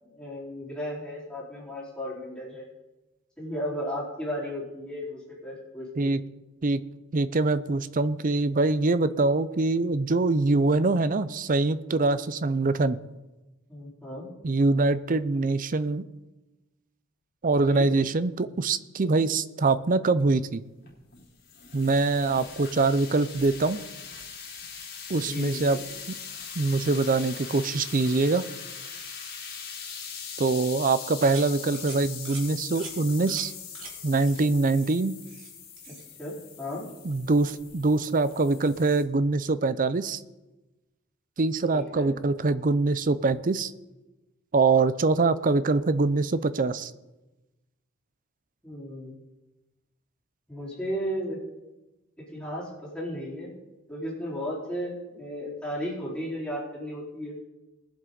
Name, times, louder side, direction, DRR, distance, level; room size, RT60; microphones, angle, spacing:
voice 1, 0.0-2.6 3.4-6.1 13.7-14.3 17.6-17.9 19.0-19.3 25.1-25.8 35.9-36.8 41.7-42.1 48.6-49.1 50.5-51.4 52.3-53.5 53.9-57.3, equal, 5° left, -7 dB, 4.2 m, -35 dB
voice 2, 7.1-13.0 14.4-16.0 17.4-20.6 21.7-23.8 25.1-25.8 26.1-26.2 26.6-28.4 30.4-33.5 34.0-35.1 37.0-40.2 41.4-43.7 44.5-46.9, right 3 dB, 40° right, 14 dB, 0.5 m, -24 dB
sound 1, 20.8-39.0, left 6 dB, 45° left, 2.9 m, -41 dB
sound 2, 31.2-31.5 31.7-32.0 32.2-32.4 32.8-32.9 33.3-33.5 33.7-33.9 34.2-34.4 34.7-35.5 35.8-36.1, right 4 dB, 65° right, 2.7 m, -43 dB
20.0 x 7.7 x 3.9 m, 1.1 s
head